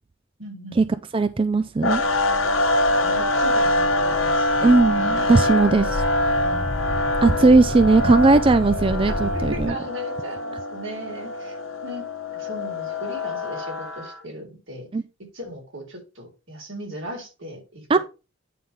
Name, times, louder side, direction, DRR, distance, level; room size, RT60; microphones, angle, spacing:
voice 1, 0.4-0.8 3.0-7.0 9.2-11.6 11.8-12.1 12.3-14.9 15.3-18.0, equal, 80° right, 3.8 m, -38 dB
voice 2, 1.1-2.0 4.6-6.0 7.2-9.8 14.9-15.0 17.9-18.0, right 3 dB, 25° right, 0.4 m, -18 dB
sound 1, 1.8-14.2, left 1 dB, 80° left, 1.1 m, -24 dB
sound 2, 1.9-9.7, left 1 dB, 40° left, 1.1 m, -33 dB
9.5 x 3.5 x 5.6 m
head